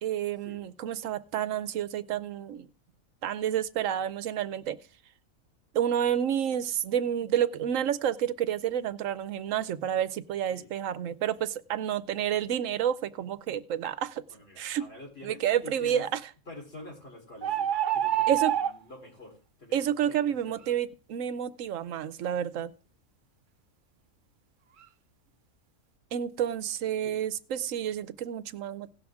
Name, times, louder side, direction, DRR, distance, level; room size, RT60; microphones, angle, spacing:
voice 1, 0.0-2.7 3.2-4.8 5.7-14.2 14.6-14.8 15.2-16.1 18.3-18.5 19.7-22.7 26.1-28.9, right 10 dB, 75° right, 15 dB, 1.0 m, -29 dB
voice 2, 14.3-16.1 16.5-20.7 27.0-27.2, left 2 dB, 45° left, -1 dB, 3.9 m, -48 dB
sound 1, 17.4-18.8, right 11 dB, 60° right, 0.5 m, -26 dB
17.5 x 6.3 x 3.5 m, 0.38 s
omnidirectional pair, 1.4 m